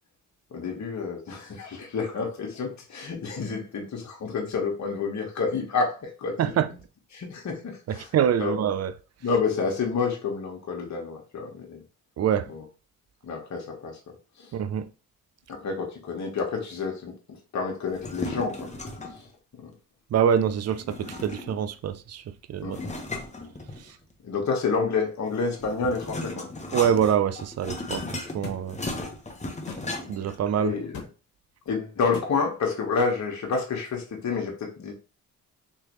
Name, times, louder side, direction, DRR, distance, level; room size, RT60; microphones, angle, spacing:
voice 1, 0.5-6.4 7.1-8.1 8.4-8.5 9.2-11.8 12.5-12.6 13.2-14.0 14.4-14.5 15.5-18.7 19.1-19.2 19.6-19.7 22.6-22.9 24.2-26.5 30.6-31.1 31.7-34.9, left 4 dB, 50° left, 1.3 m, -29 dB
voice 2, 6.4-6.7 7.9-9.0 12.2-12.5 14.5-14.9 20.1-22.8 26.7-28.8 30.1-30.8, right 8 dB, 45° right, 0.5 m, -25 dB
sound 1, 17.9-19.3 20.7-21.7 22.7-24.1 25.3-30.3, left 2 dB, 20° left, 0.9 m, -36 dB
sound 2, 28.4-28.6 29.7-29.8 30.9-31.1 32.1-32.3, left 6 dB, 70° left, 1.1 m, -37 dB
3.2 x 3.1 x 3.0 m
supercardioid pair, 60°, 35 cm